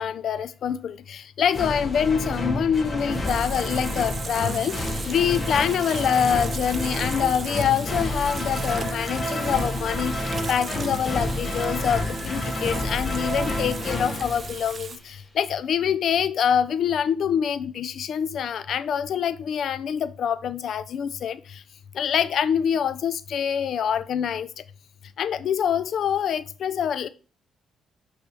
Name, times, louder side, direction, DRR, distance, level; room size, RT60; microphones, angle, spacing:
voice 1, 0.0-21.6 21.9-24.6 25.2-27.1, left 8 dB, 65° left, 0.3 m, -25 dB
sound 1, 1.5-15.2, left 1 dB, 30° left, 1.1 m, -29 dB
Water tap faucet / Sink (filling or washing), 3.2-15.0, right 5 dB, 40° right, 0.6 m, -38 dB
6.0 x 3.4 x 5.9 m
cardioid pair, 90°, 0 cm